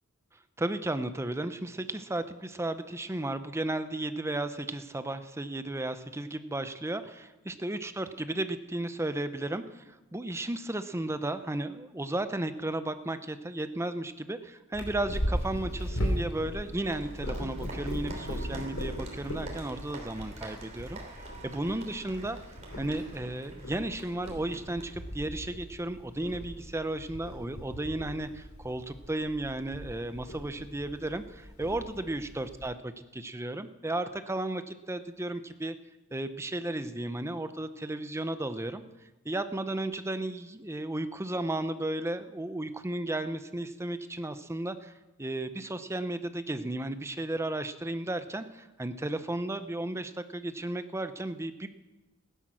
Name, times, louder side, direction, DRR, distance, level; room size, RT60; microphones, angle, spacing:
voice 1, 0.6-21.0 21.4-22.4 22.8-35.8 36.1-38.8 39.2-44.9 45.2-51.7, right 1 dB, 15° right, 10 dB, 0.7 m, -34 dB
Purr, 14.7-32.7, equal, 80° left, 3.0 m, -38 dB
Applause, 15.6-25.6, right 2 dB, 35° right, 3.1 m, -48 dB
16.0 x 10.5 x 6.2 m, 1.1 s
head